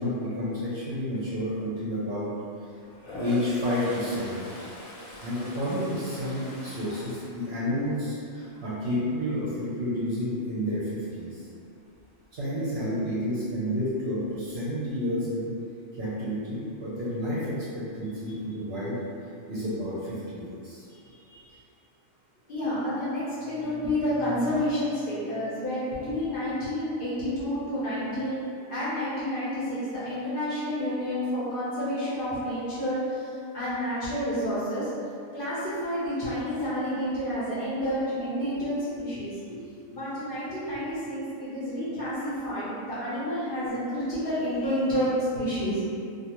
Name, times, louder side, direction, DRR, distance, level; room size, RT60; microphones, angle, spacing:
voice 1, 0.0-2.3 3.2-4.5 5.2-11.4 12.3-15.5 16.0-19.0 19.5-20.9, equal, 60° right, -9 dB, 0.7 m, -30 dB
voice 2, 2.7-3.2 4.9-5.3 8.4-8.6 20.9-21.6 22.5-34.9 35.3-39.6 39.9-45.8, equal, 55° left, -11 dB, 0.7 m, -30 dB
Toilet flush, 2.9-8.1 8.5-8.9 13.4-13.5 13.8-14.5, equal, 90° left, 1.1 m, -41 dB
2.4 x 2.3 x 2.9 m, 2.5 s
omnidirectional pair, 1.4 m